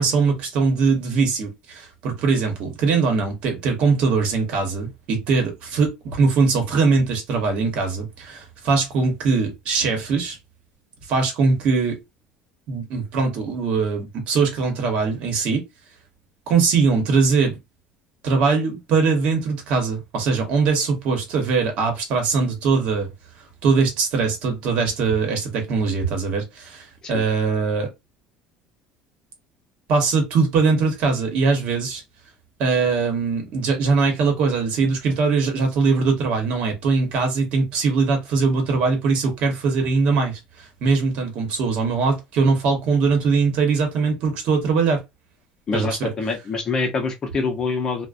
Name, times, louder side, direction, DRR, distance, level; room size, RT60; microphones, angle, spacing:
voice 1, 0.0-10.4 11.1-12.0 12.7-15.6 16.5-17.6 18.2-23.1 23.6-27.9 29.9-32.0 32.6-40.4 40.8-45.0 45.7-46.1, right 4 dB, 55° right, 0.9 m, -21 dB
voice 2, 45.7-48.1, left 4 dB, 30° left, 0.6 m, -25 dB
2.4 x 2.1 x 2.4 m
cardioid pair, 155°, 2 cm